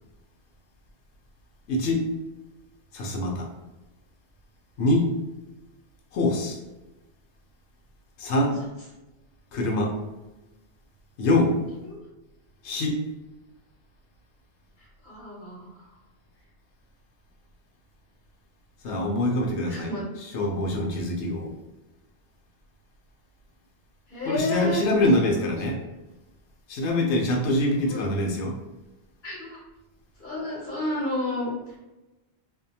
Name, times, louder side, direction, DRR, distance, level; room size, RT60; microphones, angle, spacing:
voice 1, 1.7-2.0 2.9-3.5 4.8-5.0 6.1-6.6 8.2-8.5 9.5-9.9 11.2-11.5 12.6-12.9 18.8-19.9 20.3-21.5 24.3-25.8 26.7-28.5, left 1 dB, 85° left, 0 dB, 0.9 m, -24 dB
voice 2, 8.4-8.9 11.8-12.0 14.8-15.9 19.7-20.1 24.1-24.9 27.8-28.0 29.2-29.6 30.2-31.8, left 1 dB, 50° left, -6 dB, 1.1 m, -31 dB
2.6 x 2.1 x 2.7 m, 1.0 s
omnidirectional pair, 1.1 m